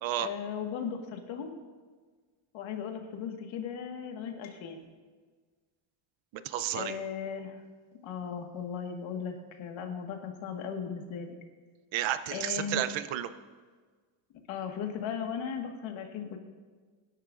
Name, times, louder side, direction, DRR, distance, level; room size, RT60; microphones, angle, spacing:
voice 1, 0.2-1.6 2.5-4.9 6.7-7.6 8.0-11.4 12.3-12.8 14.5-16.4, left 7 dB, 75° left, 3 dB, 1.9 m, -37 dB
voice 2, 6.3-7.0 11.9-13.3, right 12 dB, 70° right, 12 dB, 0.9 m, -32 dB
24.0 x 10.5 x 2.6 m, 1.5 s
cardioid pair, 140°, 48 cm